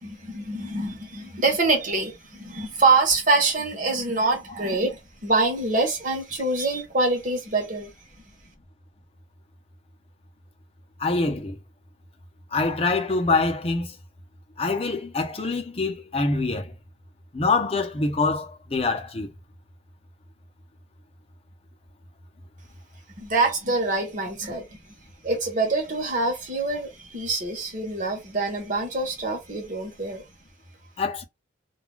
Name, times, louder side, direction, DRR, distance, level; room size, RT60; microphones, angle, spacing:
voice 1, 0.0-7.9 23.2-24.8 25.2-30.2, right 3 dB, 40° right, 0.8 m, -25 dB
voice 2, 11.0-11.6 12.5-14.0 14.6-16.7 17.3-19.3 31.0-31.2, left 3 dB, 30° left, 0.5 m, -25 dB
2.3 x 2.2 x 3.2 m
head